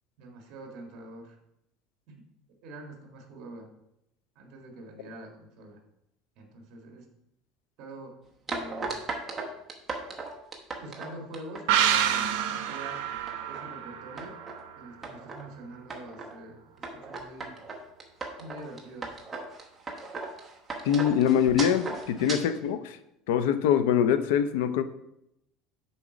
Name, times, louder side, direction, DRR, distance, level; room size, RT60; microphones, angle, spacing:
voice 1, 0.2-1.3 2.1-2.2 2.6-3.7 4.3-5.8 6.4-7.1 7.8-8.2 8.5-9.0 10.8-13.1 13.5-14.4 14.7-17.6 18.4-19.2, right 2 dB, 45° right, 2 dB, 1.6 m, -45 dB
sound 1, 8.5-11.9 12.4-12.8 13.1-13.7 14.2-14.6 15.0-15.4 15.9-16.3 16.8-22.4, right 3 dB, 15° right, 0.9 m, -37 dB
sound 2, 11.7-15.1 15.4-15.5, right 9 dB, 75° right, 0.7 m, -28 dB
voice 2, 20.8-23.0 23.3-24.8, left 8 dB, 85° left, 11 dB, 0.5 m, -24 dB
7.2 x 4.2 x 4.9 m, 0.82 s
cardioid pair, 175°, 0 cm